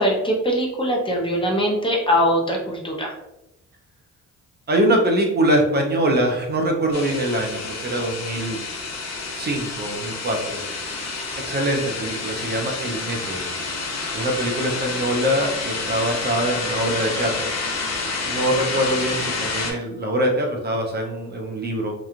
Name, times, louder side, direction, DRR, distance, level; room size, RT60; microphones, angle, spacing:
voice 1, 0.0-3.1, equal, 15° left, -1 dB, 0.6 m, -22 dB
voice 2, 4.7-8.6 9.3-10.6 11.5-13.5 14.1-17.5 18.3-21.9, right 1 dB, 35° right, 1 dB, 0.5 m, -23 dB
sound 1, 6.9-19.7, left 3 dB, 60° left, 0.7 m, -29 dB
3.0 x 2.3 x 2.4 m, 0.91 s
cardioid pair, 90°, 30 cm